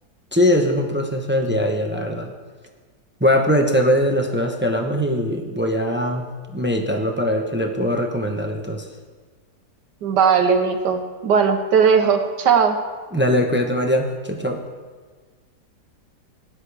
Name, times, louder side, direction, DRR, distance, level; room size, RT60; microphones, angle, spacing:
voice 1, 0.3-2.3 3.2-6.3 6.5-8.9 13.1-14.6, equal, 10° right, 3 dB, 0.5 m, -21 dB
voice 2, 10.0-12.8, right 6 dB, 75° right, 5 dB, 1.5 m, -18 dB
18.0 x 10.5 x 3.4 m, 1.4 s
omnidirectional pair, 1.9 m